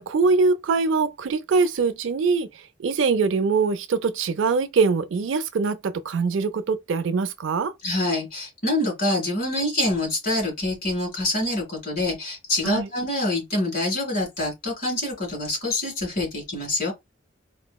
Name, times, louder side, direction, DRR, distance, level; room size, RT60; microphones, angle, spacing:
voice 1, 0.0-7.7 12.6-12.9, right 4 dB, 85° right, 0.4 m, -23 dB
voice 2, 7.8-16.9, left 1 dB, 50° left, 1.9 m, -26 dB
4.2 x 2.0 x 2.2 m
head